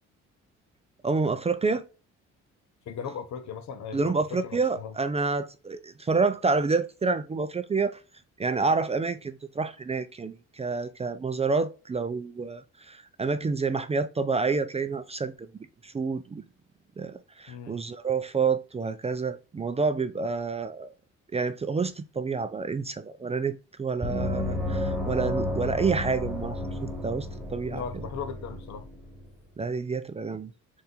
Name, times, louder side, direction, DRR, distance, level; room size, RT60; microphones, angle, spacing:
voice 1, 1.0-1.8 3.9-8.0 8.4-15.5 15.8-16.4 17.0-20.9 21.3-28.1 29.6-30.5, right 4 dB, 20° right, 0.4 m, -28 dB
voice 2, 2.9-4.9 17.5-17.8 27.7-28.9, left 7 dB, 70° left, 0.9 m, -37 dB
Gong, 24.0-29.3, left 1 dB, 5° right, 1.3 m, -32 dB
4.3 x 2.6 x 3.7 m
cardioid pair, 90°, 30 cm